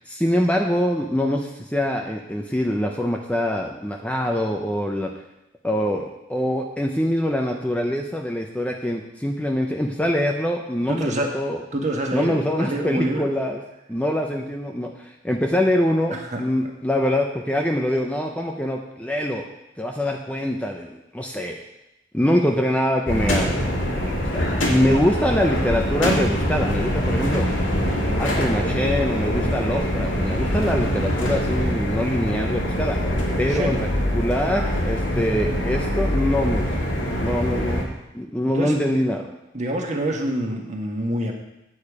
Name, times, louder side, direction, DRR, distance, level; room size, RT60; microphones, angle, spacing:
voice 1, 0.0-5.1 5.6-11.6 12.1-13.6 13.9-19.4 19.8-21.6 22.1-27.5 28.2-33.0 33.4-33.8 34.1-36.7 37.2-39.3, left 1 dB, 5° left, 1 dB, 0.6 m, -24 dB
voice 2, 10.9-11.3 11.7-13.3 16.1-16.7 33.5-33.9 38.5-38.7 39.5-41.3, right 1 dB, 40° right, 1 dB, 1.4 m, -26 dB
sound 1, 23.1-37.8, equal, 85° left, 2.2 m, -24 dB
8.7 x 8.5 x 4.9 m, 0.89 s
head